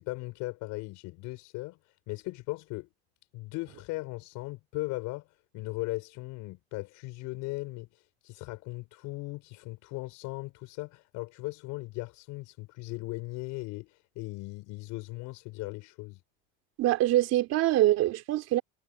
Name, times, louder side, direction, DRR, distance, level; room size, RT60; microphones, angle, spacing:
voice 1, 0.0-1.8 2.1-2.9 3.3-5.3 5.5-16.2, left 22 dB, 60° left, 5.0 m, -38 dB
voice 2, 16.8-18.6, right 14 dB, 50° right, 3.5 m, -24 dB
supercardioid pair, 130°, 34 cm